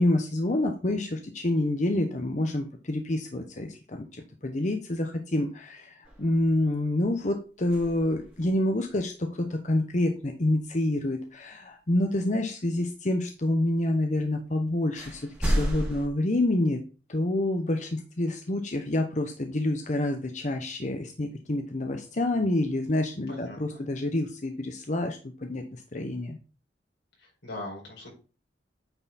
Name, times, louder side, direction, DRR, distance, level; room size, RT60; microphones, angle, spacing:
voice 1, 0.0-16.8 17.1-26.4, left 1 dB, 40° left, 5 dB, 0.9 m, -28 dB
sound 1, 6.0-6.8 7.6-8.5 12.1-12.2 14.2-14.3 15.0-16.1, equal, 5° right, 2.3 m, -31 dB
voice 2, 23.3-23.8 27.4-28.1, left 1 dB, 85° left, -1 dB, 4.8 m, -40 dB
8.8 x 4.9 x 4.0 m, 0.35 s
head